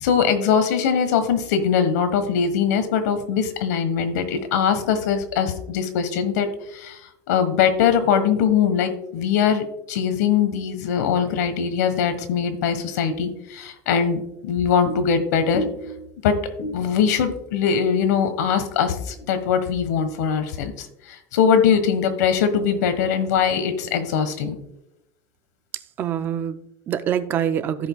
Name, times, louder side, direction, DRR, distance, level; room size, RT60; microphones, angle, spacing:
voice 1, 0.0-7.0 7.3-24.6, left 7 dB, 85° left, 9 dB, 1.3 m, -22 dB
voice 2, 25.7-27.9, right 9 dB, 25° right, 12 dB, 0.3 m, -26 dB
16.0 x 5.3 x 2.3 m, 0.85 s
supercardioid pair, 175°, 9 cm